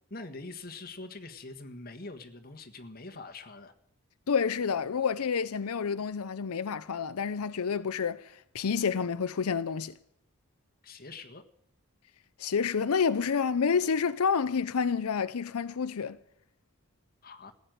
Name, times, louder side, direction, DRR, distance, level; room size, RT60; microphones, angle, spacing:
voice 1, 0.1-3.7 10.8-11.4 17.2-17.5, left 3 dB, 40° left, 1.5 m, -44 dB
voice 2, 4.3-9.9 12.4-16.2, left 6 dB, 90° left, 0.6 m, -29 dB
15.5 x 9.6 x 9.2 m
head